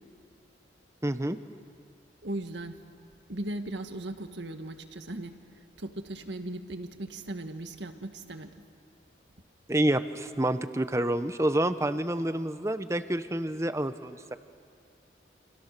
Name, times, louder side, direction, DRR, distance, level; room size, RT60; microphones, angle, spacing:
voice 1, 1.0-1.4 9.7-14.4, right 1 dB, 15° right, 11 dB, 0.8 m, -28 dB
voice 2, 2.2-2.8 3.3-5.4 5.8-8.5, right 1 dB, 75° right, 7 dB, 1.8 m, -37 dB
28.5 x 28.0 x 6.7 m, 2.2 s
head